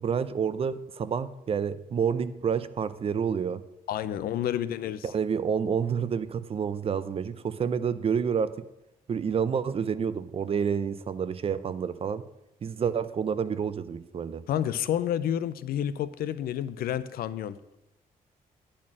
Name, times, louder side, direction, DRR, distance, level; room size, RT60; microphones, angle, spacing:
voice 1, 0.0-3.6 5.0-8.5 9.1-12.2 12.6-14.4, right 7 dB, 40° right, 14 dB, 0.5 m, -29 dB
voice 2, 3.9-5.0 14.5-17.6, left 10 dB, 85° left, 14 dB, 0.5 m, -29 dB
10.5 x 4.3 x 7.3 m, 0.90 s
cardioid pair, 115°, 15 cm